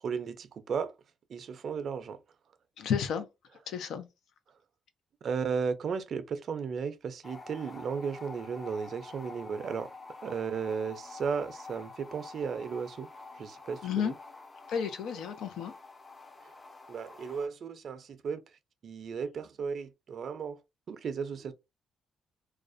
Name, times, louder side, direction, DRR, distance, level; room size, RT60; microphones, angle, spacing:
voice 1, 0.0-0.9 1.3-2.2 5.2-9.9 10.2-13.1 13.3-14.1 16.9-18.4 18.8-20.6 20.9-21.5, right 6 dB, 55° right, 0.4 m, -35 dB
voice 2, 2.8-3.3 3.7-4.1 13.8-14.1 14.7-15.7, left 7 dB, 80° left, 0.5 m, -32 dB
sound 1, 7.2-17.5, left 3 dB, 25° left, 0.4 m, -48 dB
2.4 x 2.1 x 2.5 m
cardioid pair, 90°, 0 cm